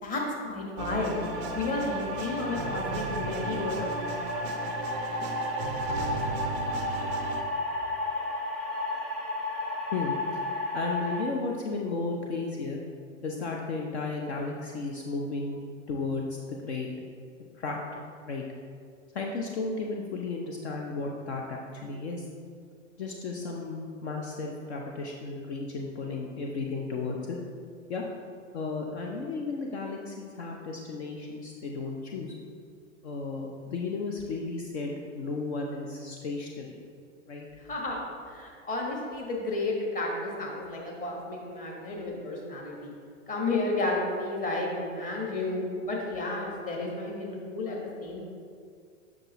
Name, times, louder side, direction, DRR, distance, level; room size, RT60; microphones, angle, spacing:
voice 1, 0.0-1.2 1.5-4.0 37.7-38.0 38.3-42.9 43.3-48.2, left 2 dB, 20° left, -2 dB, 1.3 m, -32 dB
sound 1, 0.8-7.4, right 4 dB, 25° right, 0.4 m, -35 dB
sound 2, 1.0-11.2, left 2 dB, ahead, 0.7 m, -33 dB
voice 2, 10.7-12.8 13.2-15.6 15.9-16.9 17.5-18.4 19.1-22.2 23.0-27.4 27.9-28.0 28.5-32.3 33.0-36.8 37.3-37.5, left 3 dB, 55° left, 0 dB, 0.8 m, -34 dB
7.6 x 6.0 x 3.0 m, 2.2 s
figure-of-eight pair, 95°, 39 cm